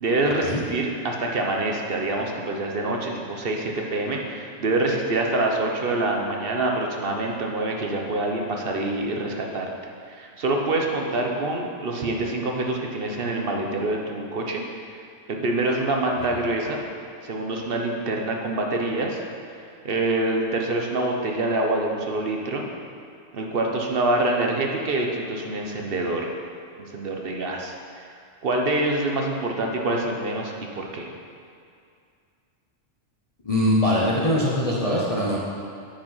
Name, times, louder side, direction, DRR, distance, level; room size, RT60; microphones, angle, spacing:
voice 1, 0.0-9.7 10.1-14.6 14.9-15.0 15.3-16.8 17.2-19.2 19.8-22.6 23.3-26.3 26.8-28.1 28.4-31.1, right 2 dB, 55° right, 1 dB, 1.0 m, -26 dB
voice 2, 33.4-35.4, left 1 dB, 35° left, -6 dB, 0.8 m, -22 dB
8.8 x 5.2 x 5.6 m, 2.3 s
omnidirectional pair, 1.3 m